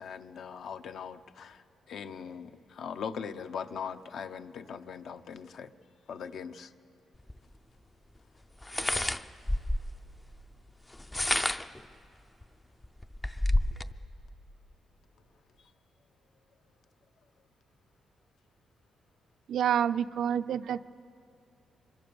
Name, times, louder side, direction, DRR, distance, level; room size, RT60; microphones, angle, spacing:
voice 1, 0.0-5.7 6.1-6.7, left 6 dB, 60° left, 9 dB, 0.8 m, -40 dB
sound 1, 7.3-7.4 8.6-10.0 10.9-11.8 12.4-12.5 12.8-13.9, left 1 dB, 10° left, 0.5 m, -29 dB
voice 2, 19.5-20.9, right 9 dB, 65° right, 14 dB, 0.5 m, -28 dB
24.5 x 22.0 x 7.0 m, 2.9 s
cardioid pair, 155°, 0 cm